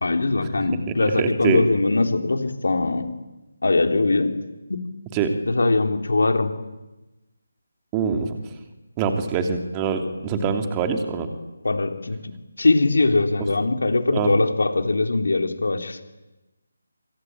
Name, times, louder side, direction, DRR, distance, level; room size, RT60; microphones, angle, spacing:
voice 1, 0.0-3.2 3.6-4.4 4.7-4.9 5.5-6.5 11.6-12.3 12.6-16.0, left 3 dB, 65° left, 6 dB, 3.6 m, -21 dB
voice 2, 1.2-1.6 5.1-5.3 7.9-8.4 9.0-11.3 14.1-14.3, right 6 dB, 15° right, 6 dB, 2.9 m, -24 dB
25.5 x 23.5 x 8.9 m, 1.1 s
figure-of-eight pair, 155°, 0 cm